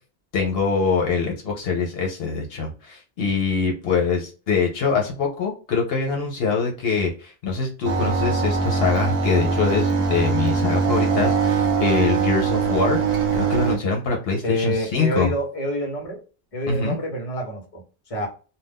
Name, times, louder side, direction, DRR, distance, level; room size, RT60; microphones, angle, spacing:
voice 1, 0.3-13.0 13.3-15.3 16.7-17.0, left 4 dB, 75° left, 0.9 m, -24 dB
sound 1, 7.8-13.8, right 5 dB, 70° right, 0.9 m, -22 dB
voice 2, 14.4-16.2 16.5-18.3, equal, 35° left, 1.0 m, -27 dB
2.5 x 2.2 x 3.4 m
omnidirectional pair, 1.0 m